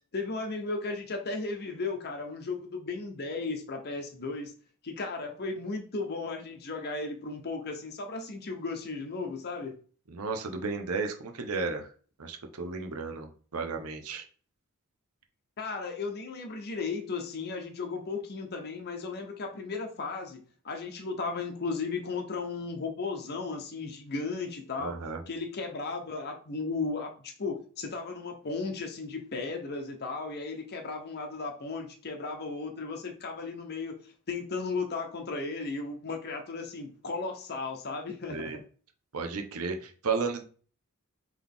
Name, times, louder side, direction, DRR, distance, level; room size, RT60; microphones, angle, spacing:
voice 1, 0.1-4.5 4.8-9.7 15.6-34.0 34.3-38.6, left 4 dB, 45° left, 4 dB, 0.7 m, -35 dB
voice 2, 10.1-11.9 12.2-14.3 24.8-25.2 38.3-38.6 39.1-40.4, right 4 dB, 80° right, 5 dB, 0.7 m, -33 dB
3.9 x 3.0 x 3.5 m, 0.41 s
head